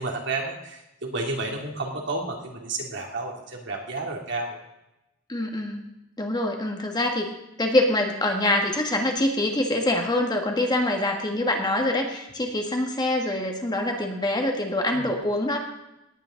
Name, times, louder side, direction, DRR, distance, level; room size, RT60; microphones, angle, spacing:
voice 1, 0.0-4.6 14.9-15.0, right 2 dB, 65° right, 0 dB, 2.7 m, -31 dB
voice 2, 5.3-5.9 6.2-7.3 7.6-15.6, left 1 dB, 20° left, 3 dB, 1.6 m, -25 dB
18.5 x 9.0 x 3.9 m, 0.91 s
head